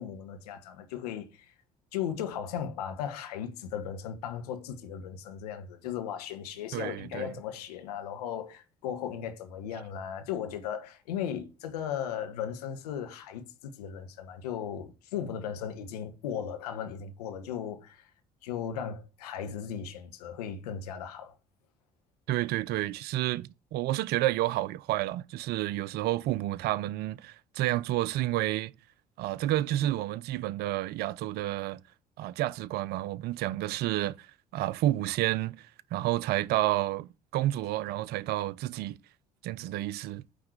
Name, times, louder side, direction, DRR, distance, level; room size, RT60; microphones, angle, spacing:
voice 1, 0.0-1.5 1.9-18.1 18.4-21.3, left 8 dB, 70° left, 1.3 m, -37 dB
voice 2, 6.7-7.3 22.3-28.7 29.2-31.8 32.2-34.3 34.5-39.0 39.4-40.2, right 15 dB, 50° right, 0.5 m, -30 dB
9.3 x 3.3 x 6.4 m
figure-of-eight pair, 50°, 21 cm